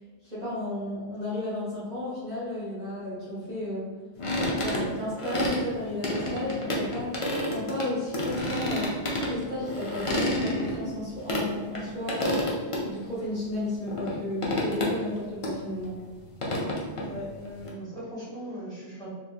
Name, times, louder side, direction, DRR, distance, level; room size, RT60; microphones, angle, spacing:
voice 1, 0.2-3.9 4.6-12.4 12.8-16.0, left 1 dB, 40° right, -11 dB, 1.0 m, -33 dB
sound 1, 4.2-5.6 6.0-7.9 8.1-11.4 11.7-11.8 12.1-12.8 13.2-13.3 13.9-14.2 14.4-15.2 15.4-15.5 15.8-17.7, left 1 dB, 45° left, 0.4 m, -29 dB
voice 2, 17.0-19.1, equal, 5° left, -10 dB, 1.2 m, -39 dB
3.5 x 2.5 x 2.4 m, 1.4 s
omnidirectional pair, 1.2 m